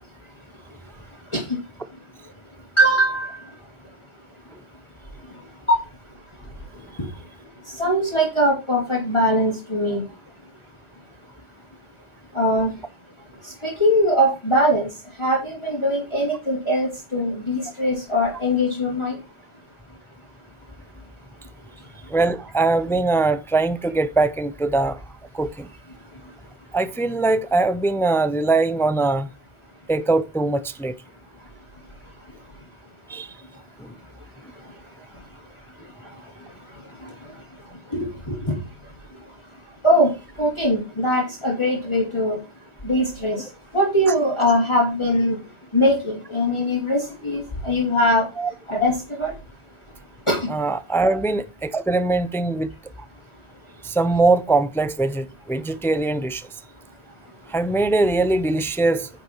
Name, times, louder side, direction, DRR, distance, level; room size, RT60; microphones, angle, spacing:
voice 1, 2.8-3.4 5.7-5.8 7.8-10.0 12.3-12.7 13.4-14.9 15.2-19.2 37.9-38.6 39.8-40.1 40.4-42.4 42.8-43.4 43.7-45.4 45.7-48.3 48.7-49.3 50.3-50.5, equal, 20° left, 2.8 m, -21 dB
voice 2, 22.1-25.0 25.3-25.7 26.7-29.3 29.9-31.0 33.1-33.3 33.8-33.9 48.4-48.5 50.5-52.7 53.8-56.5 57.5-59.1, right 3 dB, 5° left, 0.4 m, -21 dB
9.9 x 5.9 x 4.5 m
omnidirectional pair, 1.3 m